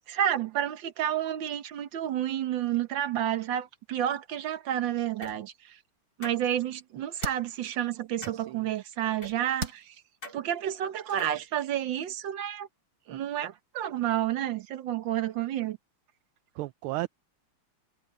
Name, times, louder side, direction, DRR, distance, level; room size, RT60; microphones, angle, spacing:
voice 1, 0.1-5.8 6.2-10.0 10.3-12.7 13.1-15.8, right 11 dB, 65° right, 1.8 m, -30 dB
sound 1, 5.2-5.3 6.2-6.4 7.2-7.3 8.2-8.4 9.2-9.3 10.2-10.4 11.1-11.4, equal, 50° left, 5.6 m, -42 dB
sound 2, 5.4-10.0, right 2 dB, 45° right, 4.7 m, -44 dB
voice 2, 8.2-8.7 16.5-17.1, right 18 dB, 80° right, 1.4 m, -34 dB
omnidirectional pair, 2.4 m